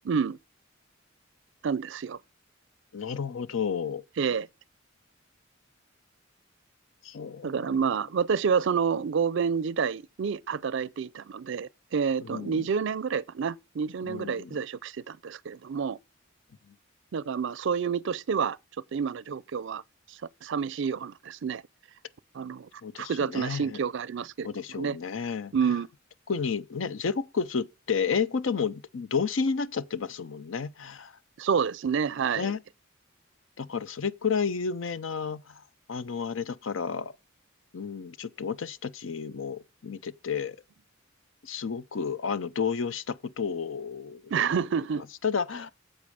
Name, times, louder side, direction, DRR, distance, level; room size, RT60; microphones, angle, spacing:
voice 1, 0.1-0.4 1.6-2.2 4.2-4.5 7.4-16.0 17.1-18.6 18.9-19.8 20.1-21.6 22.3-22.7 23.0-25.0 25.5-25.9 31.4-32.5 44.3-45.0, right 6 dB, 65° right, 0.4 m, -29 dB
voice 2, 2.9-4.0 7.0-7.8 12.2-12.6 14.1-14.6 16.7-16.8 22.8-23.8 24.4-25.5 26.3-31.1 32.4-32.6 33.6-35.6 35.9-37.1 37.7-40.6 41.4-44.2 45.2-45.7, left 6 dB, 70° left, 0.6 m, -31 dB
8.5 x 7.2 x 5.0 m
head